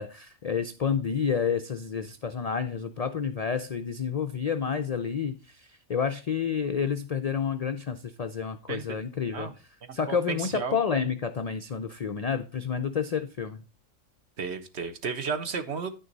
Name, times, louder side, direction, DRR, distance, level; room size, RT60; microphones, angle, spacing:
voice 1, 0.0-9.5 9.9-13.6, left 6 dB, 65° left, 8 dB, 0.4 m, -29 dB
voice 2, 8.7-9.0 9.3-9.5 9.8-10.8 14.4-15.9, right 5 dB, 60° right, 9 dB, 1.1 m, -33 dB
10.0 x 6.3 x 4.0 m, 0.32 s
omnidirectional pair, 1.4 m